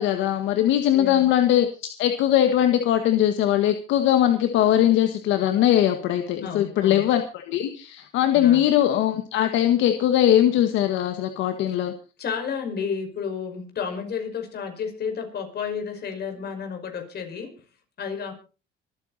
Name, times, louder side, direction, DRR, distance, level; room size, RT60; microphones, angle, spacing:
voice 1, 0.0-1.7 2.0-11.9, left 11 dB, 80° left, 7 dB, 1.6 m, -20 dB
voice 2, 0.9-1.3 6.4-7.1 8.3-8.6 12.2-17.6 18.0-18.3, left 6 dB, 60° left, 5 dB, 5.6 m, -31 dB
24.5 x 9.3 x 4.2 m, 0.35 s
cardioid pair, 85°, 19 cm